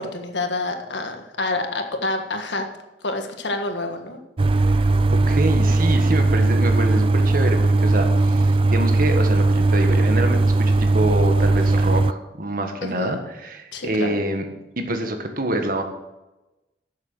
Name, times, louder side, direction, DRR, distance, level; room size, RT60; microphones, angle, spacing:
voice 1, 0.0-2.7 3.0-4.2 12.8-13.2 13.7-14.2, left 2 dB, 85° left, 5 dB, 1.6 m, -28 dB
sound 1, 4.4-12.1, right 2 dB, 30° right, 0.4 m, -18 dB
voice 2, 4.7-14.5 14.8-15.8, right 1 dB, 55° right, 5 dB, 1.6 m, -26 dB
12.0 x 7.5 x 6.3 m, 1.0 s
head